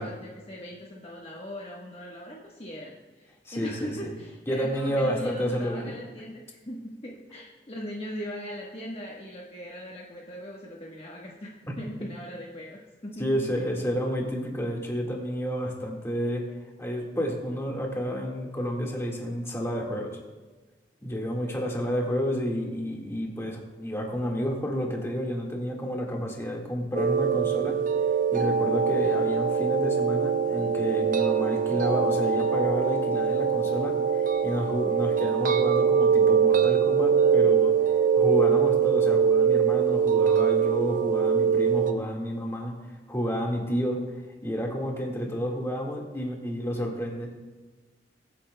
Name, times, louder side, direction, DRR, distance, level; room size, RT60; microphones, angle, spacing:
voice 1, 0.0-13.4, equal, 35° left, -3 dB, 1.2 m, -39 dB
voice 2, 3.4-4.1 4.5-6.0 13.2-20.2 21.0-27.8 28.3-44.0 44.4-47.3, equal, 15° left, -1 dB, 1.7 m, -30 dB
sound 1, 26.9-41.9, right 7 dB, 50° right, 0.6 m, -23 dB
22.5 x 8.6 x 2.2 m, 1.3 s
head